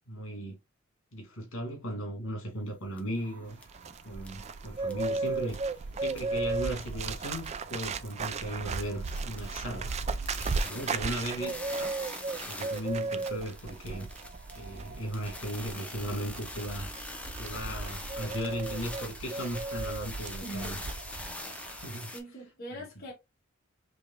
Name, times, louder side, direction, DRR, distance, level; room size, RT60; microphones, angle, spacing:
voice 1, 0.1-0.6 1.1-3.6 4.0-5.6 6.0-10.0 10.5-11.9 12.5-14.1 14.5-16.9 17.4-20.8 21.7-22.1, equal, 75° left, 2.1 m, -37 dB
sound 1, 3.0-3.1 3.6-3.7 4.2-4.5 4.8-5.1 5.4-6.3 6.6-7.7 8.1-8.2 8.5-22.2, left 1 dB, 5° left, 0.7 m, -44 dB
sound 2, 3.1-22.1, right 4 dB, 55° right, 1.0 m, -54 dB
Bird, 3.5-21.3 21.6-21.9, right 3 dB, 35° right, 0.3 m, -35 dB
voice 2, 20.4-20.8 22.1-23.1, right 1 dB, 50° left, 1.7 m, -42 dB
5.1 x 3.3 x 2.3 m
head